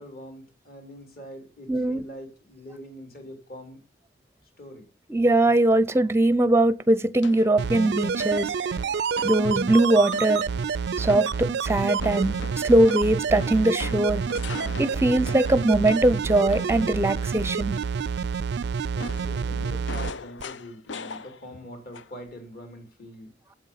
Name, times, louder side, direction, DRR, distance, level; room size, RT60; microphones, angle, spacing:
voice 1, 0.0-3.8 4.6-4.9 18.9-23.3, equal, 55° left, 3.5 m, -43 dB
voice 2, 1.7-2.0 5.1-10.5 11.0-14.2 14.8-17.8, right 1 dB, 15° right, 0.5 m, -21 dB
sound 1, 7.2-7.6 8.2-8.6 9.2-9.5 10.1-10.7 11.1-11.5 12.0-16.9 19.0-21.7 21.9-22.3, left 4 dB, 80° left, 0.6 m, -40 dB
sound 2, 7.6-20.1 20.4-20.5, right 5 dB, 65° right, 0.4 m, -28 dB
7.9 x 7.8 x 5.7 m
head